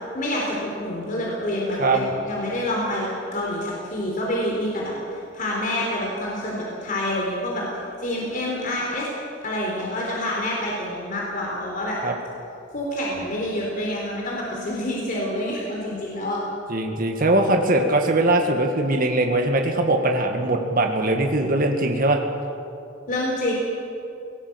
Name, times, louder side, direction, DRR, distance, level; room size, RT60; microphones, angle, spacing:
voice 1, 0.1-7.7 8.0-9.1 9.4-12.0 12.7-16.4 23.1-23.5, left 1 dB, 45° left, -3 dB, 3.8 m, -27 dB
voice 2, 16.7-22.2, right 2 dB, 50° right, 3 dB, 1.9 m, -21 dB
19.0 x 18.0 x 8.0 m, 2.6 s
head